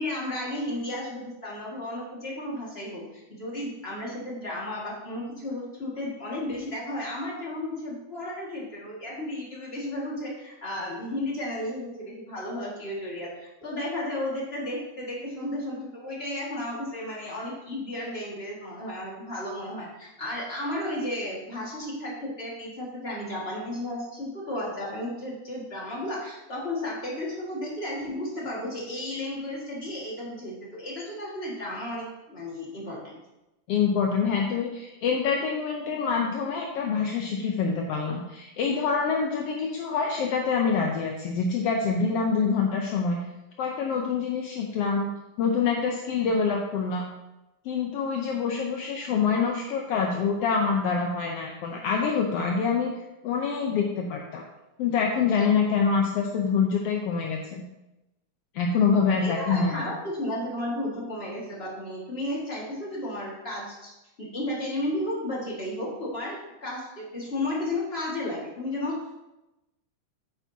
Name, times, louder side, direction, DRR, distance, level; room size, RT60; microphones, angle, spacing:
voice 1, 0.0-33.1 59.2-63.9 64.2-69.2, left 1 dB, 25° left, -4 dB, 1.5 m, -33 dB
voice 2, 33.7-43.2 43.6-45.1 45.4-47.0 47.6-52.9 53.2-54.4 54.8-57.6 58.5-59.8, left 5 dB, 75° left, 0 dB, 1.4 m, -26 dB
9.0 x 8.7 x 2.8 m, 0.97 s
omnidirectional pair, 3.6 m